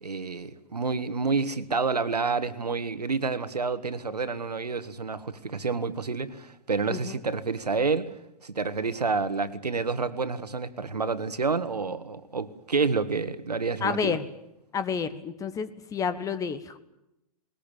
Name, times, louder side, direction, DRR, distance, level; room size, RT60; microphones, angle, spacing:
voice 1, 0.0-8.1 8.4-14.2, right 4 dB, 80° right, 12 dB, 1.7 m, -29 dB
voice 2, 13.8-14.2 14.7-16.8, left 6 dB, 15° left, 12 dB, 1.1 m, -30 dB
21.0 x 20.5 x 9.1 m, 0.86 s
figure-of-eight pair, 115°, 20 cm